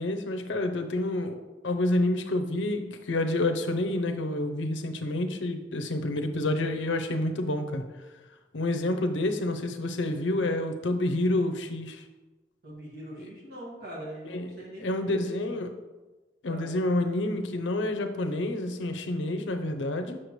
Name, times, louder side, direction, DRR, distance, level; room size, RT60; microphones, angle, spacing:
voice 1, 0.0-7.8 8.5-12.0 13.2-13.3 14.3-14.5 14.8-15.7 16.4-20.2, left 1 dB, 90° left, 6 dB, 0.6 m, -28 dB
voice 2, 12.6-14.9 16.4-16.6, right 1 dB, 55° right, -4 dB, 1.9 m, -42 dB
6.6 x 5.8 x 3.1 m, 1.2 s
head